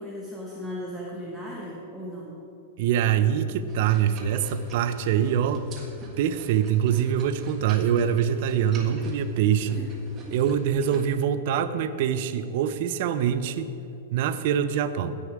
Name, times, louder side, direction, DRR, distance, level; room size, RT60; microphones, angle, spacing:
voice 1, 0.0-2.4 9.7-9.9, equal, ahead, -6 dB, 1.2 m, -36 dB
voice 2, 2.8-5.7 6.2-9.8 10.3-13.7 14.1-15.2, right 9 dB, 55° right, 11 dB, 0.6 m, -24 dB
sound 1, 3.7-11.1, right 3 dB, 25° right, 1.6 m, -47 dB
16.0 x 5.5 x 4.8 m, 2.8 s
hypercardioid pair, 140°, 0 cm